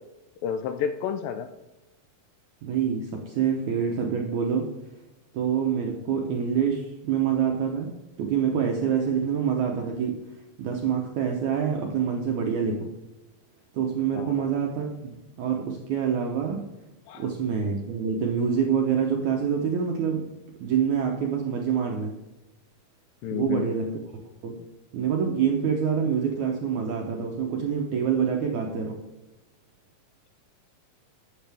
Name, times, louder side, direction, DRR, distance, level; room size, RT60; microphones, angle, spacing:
voice 1, 0.4-1.5 14.1-14.3 17.1-17.3 23.2-23.6, left 8 dB, 80° left, 8 dB, 2.1 m, -30 dB
voice 2, 2.6-4.7 5.3-10.2 10.6-12.9 13.7-16.6 17.2-20.2 20.6-22.1 23.3-23.9 24.4-24.6 24.9-29.0, right 7 dB, 75° right, 1 dB, 1.7 m, -26 dB
12.0 x 8.2 x 3.4 m, 1.0 s
omnidirectional pair, 4.4 m